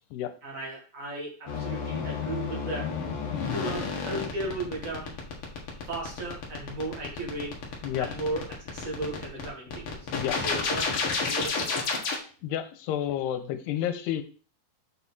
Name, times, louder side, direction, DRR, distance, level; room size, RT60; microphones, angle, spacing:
voice 1, 0.4-3.0 3.5-5.4 5.9-7.6 8.0-10.1 10.4-10.9 11.2-12.1, right 2 dB, 75° right, -2 dB, 0.7 m, -36 dB
sound 1, 1.5-12.1, left 5 dB, 65° left, 1.4 m, -31 dB
voice 2, 3.3-3.7 7.8-8.1 10.1-10.4 12.4-14.2, left 11 dB, 90° left, 9 dB, 2.7 m, -31 dB
7.6 x 4.4 x 4.2 m, 0.39 s
omnidirectional pair, 4.7 m